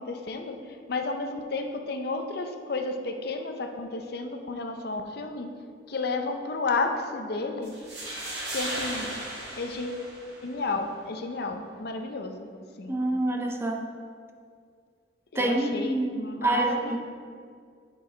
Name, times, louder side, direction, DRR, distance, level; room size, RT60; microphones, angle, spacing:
voice 1, 0.0-5.5 5.9-7.7 8.5-9.2 9.6-10.1 10.4-12.5 12.8-13.0 15.3-17.0, left 3 dB, 55° left, 5 dB, 0.6 m, -32 dB
sound 1, 7.6-10.6, right 1 dB, 65° right, 1.9 m, -36 dB
voice 2, 12.9-13.9 15.4-17.0, right 2 dB, 15° right, 3 dB, 0.4 m, -27 dB
8.2 x 4.7 x 4.2 m, 2.2 s
head